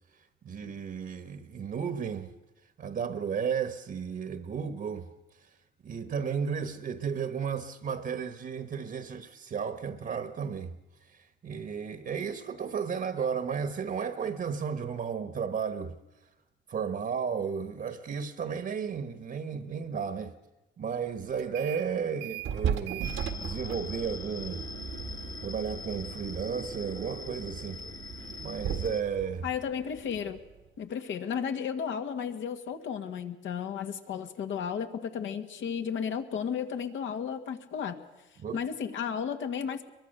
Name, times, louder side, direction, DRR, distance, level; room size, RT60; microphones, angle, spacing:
voice 1, 0.2-2.3 2.8-5.1 5.4-5.6 5.8-10.8 11.0-16.0 16.7-20.4 20.8-24.6 25.4-27.8 28.4-29.5 38.4-38.6, right 6 dB, 50° right, 1.4 m, -34 dB
sound 1, 21.4-21.9 22.2-30.7, right 8 dB, 75° right, 1.7 m, -37 dB
sound 2, 23.0-29.0, left 4 dB, 20° left, 1.1 m, -42 dB
voice 2, 29.4-30.4 30.8-38.0 38.5-39.9, left 7 dB, 75° left, 1.9 m, -33 dB
22.5 x 22.5 x 6.7 m
cardioid pair, 90°, 20 cm